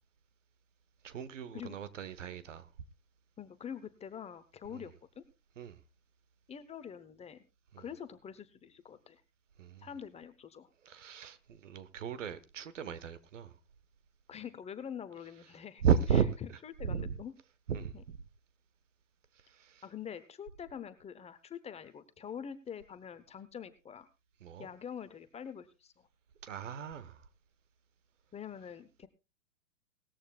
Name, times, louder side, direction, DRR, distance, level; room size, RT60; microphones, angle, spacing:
voice 1, 1.0-2.7 4.7-4.9 5.6-5.8 7.7-7.8 9.6-9.9 10.8-13.5 15.8-16.3 16.8-17.2 17.7-18.2 19.5-19.8 24.4-24.7 26.4-27.2, right 7 dB, 70° right, 1.4 m, -34 dB
voice 2, 3.4-5.2 6.5-7.4 7.8-9.2 9.8-10.7 14.3-15.8 16.6-17.3 17.9-18.0 19.8-24.1 24.6-26.1 28.3-29.1, left 8 dB, 15° left, 1.0 m, -45 dB
19.0 x 14.0 x 2.4 m
figure-of-eight pair, 100°, 38 cm